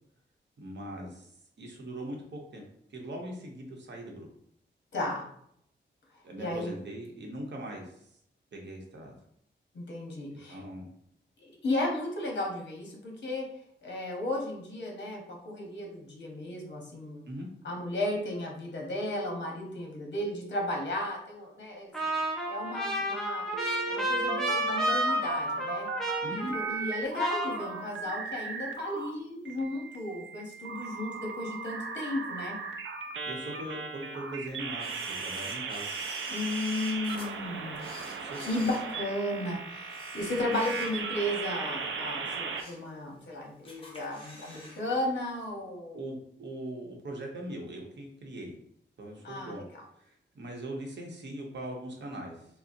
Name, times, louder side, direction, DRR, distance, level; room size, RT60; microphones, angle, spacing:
voice 1, 0.6-1.3 1.6-2.6 2.9-4.3 6.2-7.9 8.5-9.2 10.5-10.9 17.3-17.5 26.2-26.5 33.2-35.9 38.2-38.7 45.9-48.5 49.0-49.7 50.0-52.5, right 1 dB, 65° right, 0 dB, 0.8 m, -40 dB
voice 2, 4.9-5.2 6.4-6.7 9.7-10.6 11.4-13.5 13.8-17.3 17.6-22.2 22.5-23.5 23.9-25.9 26.3-32.6 36.3-37.8 38.4-46.0 49.2-49.8, left 1 dB, 60° left, 0 dB, 0.9 m, -34 dB
Trumpet, 21.9-26.9 27.1-28.2, right 1 dB, ahead, 0.6 m, -31 dB
sound 1, 23.5-26.2 26.5-29.1 29.4-42.6, right 5 dB, 80° right, 0.4 m, -37 dB
Camera, 34.8-37.3 37.7-39.4 39.8-41.2 41.6-41.8 42.3-42.9 43.2-43.3 43.6-44.8 45.1-45.2, left 1 dB, 25° left, 0.9 m, -48 dB
3.9 x 2.0 x 2.5 m, 0.71 s
wide cardioid pair, 105°, 20 cm